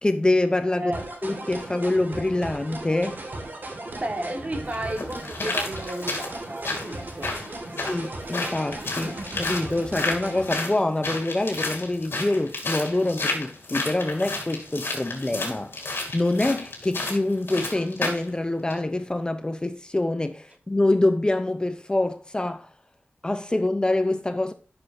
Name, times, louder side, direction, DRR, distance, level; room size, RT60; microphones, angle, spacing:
voice 1, 0.0-0.9 1.2-3.2 7.8-22.7 23.2-24.5, left 2 dB, 20° left, 0.6 m, -25 dB
voice 2, 0.7-1.0 4.0-7.3 7.6-7.8 12.9-13.1, right 1 dB, 35° right, 1.6 m, -33 dB
sound 1, 0.9-10.5, right 2 dB, 55° right, 2.0 m, -37 dB
sound 2, 3.9-4.0 4.7-18.3 18.7-18.8, left 3 dB, 80° left, 3.0 m, -31 dB
12.0 x 6.4 x 2.7 m
wide cardioid pair, 100°, 4 cm